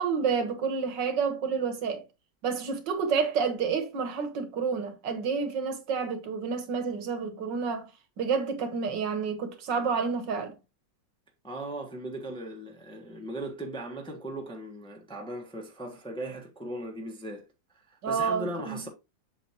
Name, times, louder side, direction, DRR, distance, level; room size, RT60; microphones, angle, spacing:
voice 1, 0.0-2.0 2.4-7.9 8.2-10.5 18.0-18.9, right 5 dB, 85° right, 2.0 m, -29 dB
voice 2, 11.4-17.4 17.9-18.9, right 1 dB, 5° left, 1.1 m, -38 dB
7.5 x 6.9 x 2.9 m
omnidirectional pair, 1.9 m